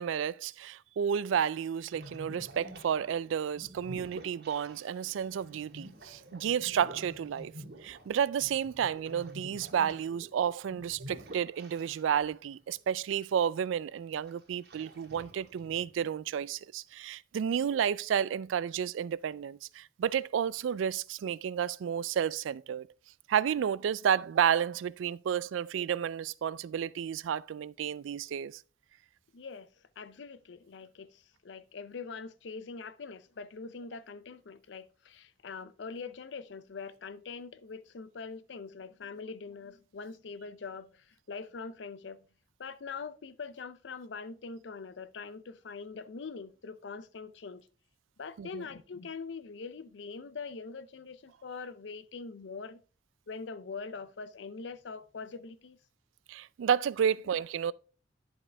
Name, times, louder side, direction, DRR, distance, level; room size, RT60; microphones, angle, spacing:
voice 1, 0.0-7.5 7.8-22.9 23.3-28.6 48.4-48.6 56.3-57.7, right 8 dB, 85° right, 0.3 m, -31 dB
sound 1, 1.9-12.3 12.6-12.7 13.3-13.8 14.3-16.1, right 1 dB, 55° right, 1.9 m, -49 dB
voice 2, 29.3-29.7 30.0-42.2 42.6-47.6 48.2-52.8 53.3-55.8, left 4 dB, 70° left, 0.5 m, -43 dB
11.0 x 5.0 x 3.3 m
head